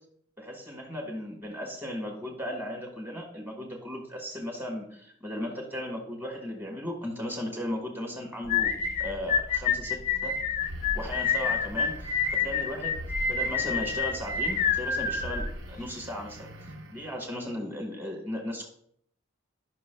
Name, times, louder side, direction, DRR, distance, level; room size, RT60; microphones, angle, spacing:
voice 1, 0.4-8.7 9.0-10.3 10.9-12.1 12.4-12.9 13.3-16.5 16.9-18.7, equal, 10° right, 1 dB, 1.4 m, -36 dB
sound 1, 8.5-15.9, left 6 dB, 35° left, 0.5 m, -28 dB
sound 2, 10.6-17.3, equal, 75° right, 0.8 m, -41 dB
11.5 x 6.0 x 2.2 m, 0.67 s
head